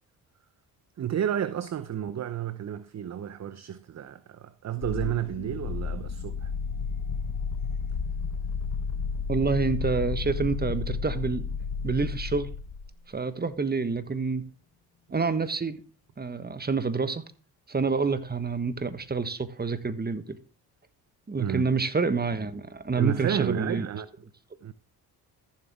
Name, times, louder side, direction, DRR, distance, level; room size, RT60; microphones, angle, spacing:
voice 1, 1.0-6.5 21.4-21.7 23.0-24.1 24.6-24.7, right 10 dB, 40° right, 0.7 m, -31 dB
sound 1, 4.8-13.0, left 5 dB, 50° left, 1.3 m, -32 dB
voice 2, 9.3-11.4 11.8-12.5 13.1-14.4 15.1-15.8 16.2-17.2 17.7-20.4 21.3-23.9, right 4 dB, 20° right, 1.3 m, -28 dB
14.0 x 7.3 x 3.6 m
hypercardioid pair, 55°, 43 cm